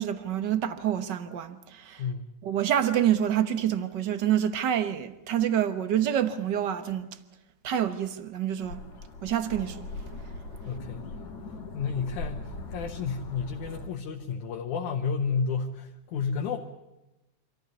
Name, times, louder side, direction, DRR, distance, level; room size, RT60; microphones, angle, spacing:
voice 1, 0.0-2.0 2.4-7.1 7.6-8.8 9.2-9.9, right 10 dB, 60° right, 1.2 m, -27 dB
sound 1, 8.6-13.9, left 2 dB, 65° left, 3.4 m, -40 dB
voice 2, 10.7-11.1 11.7-16.6, left 5 dB, 85° left, 2.8 m, -31 dB
25.5 x 14.5 x 9.5 m
omnidirectional pair, 3.4 m